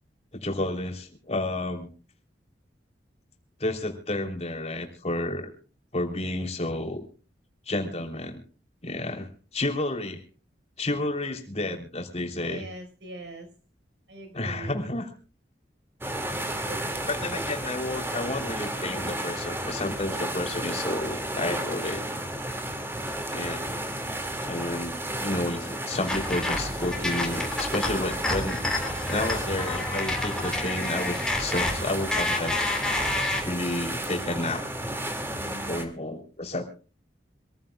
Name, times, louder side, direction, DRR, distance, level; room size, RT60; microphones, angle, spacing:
voice 1, 0.3-1.9 3.6-5.5 5.9-7.0 7.7-8.4 8.8-9.3 9.5-10.2 10.8-12.7 14.3-15.1 17.1-22.2 23.3-23.8 24.5-28.6 29.1-32.7 33.4-34.6 35.7-36.6, left 2 dB, 35° left, 3 dB, 3.2 m, -31 dB
voice 2, 12.4-13.5 14.1-14.8 16.3-17.1 35.4-35.7, right 1 dB, 80° right, 6 dB, 4.5 m, -42 dB
sound 1, 16.0-35.8, right 1 dB, 15° right, 2.1 m, -33 dB
sound 2, 26.1-33.4, left 2 dB, 5° left, 3.4 m, -29 dB
26.0 x 15.0 x 2.3 m, 0.37 s
head